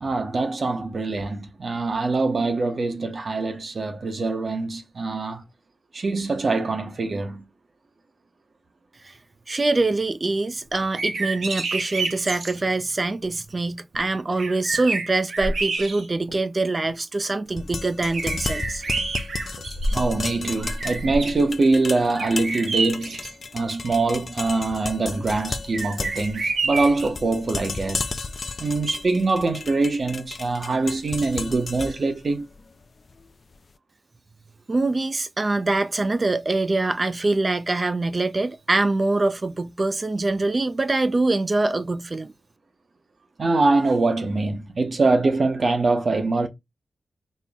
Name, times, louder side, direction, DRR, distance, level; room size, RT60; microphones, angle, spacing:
voice 1, 0.0-5.4 5.9-7.4 19.9-23.2 23.5-28.1 28.6-32.5 43.4-46.5, right 3 dB, 50° right, 0.8 m, -23 dB
voice 2, 9.5-18.8 34.7-42.3, right 2 dB, 35° right, 0.4 m, -24 dB
sound 1, 10.8-12.6 13.9-14.0 14.4-16.3 16.8-16.9 18.1-20.2 20.5-21.4 22.1-23.3 25.7-27.1, right 3 dB, 80° right, 0.8 m, -28 dB
sound 2, 17.5-33.5, left 4 dB, 45° left, 0.4 m, -34 dB
4.3 x 2.1 x 3.5 m
wide cardioid pair, 105°, 0 cm